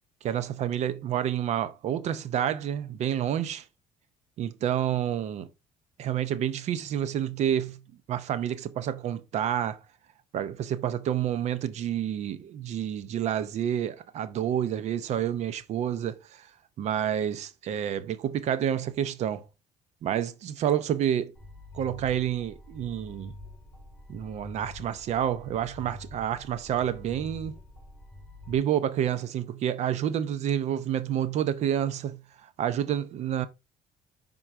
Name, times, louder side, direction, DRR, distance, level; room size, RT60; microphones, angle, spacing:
voice 1, 0.2-3.7 4.4-5.5 6.0-7.8 8.1-9.8 10.3-16.5 16.8-19.4 20.0-21.3 21.7-23.3 24.1-27.6 28.5-33.5, right 10 dB, 60° right, 0.6 m, -29 dB
sound 1, 21.3-28.6, left 1 dB, 5° left, 3.2 m, -46 dB
5.8 x 3.8 x 4.3 m
cardioid pair, 115°, 13 cm